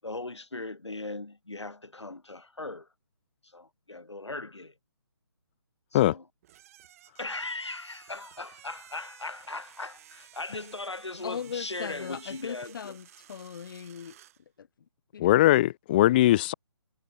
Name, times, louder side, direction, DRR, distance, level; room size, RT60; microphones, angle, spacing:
voice 1, 0.0-2.9 3.4-4.7 5.9-6.2 7.2-13.0, left 2 dB, 90° left, 7.1 m, -38 dB
sound 1, 6.4-14.4, right 13 dB, 35° right, 3.5 m, -54 dB
voice 2, 11.2-14.2 14.6-14.7 15.1-15.3, left 7 dB, 50° left, 2.0 m, -38 dB
voice 3, 15.2-16.5, left 15 dB, 20° left, 0.5 m, -20 dB
figure-of-eight pair, 150°, 14 cm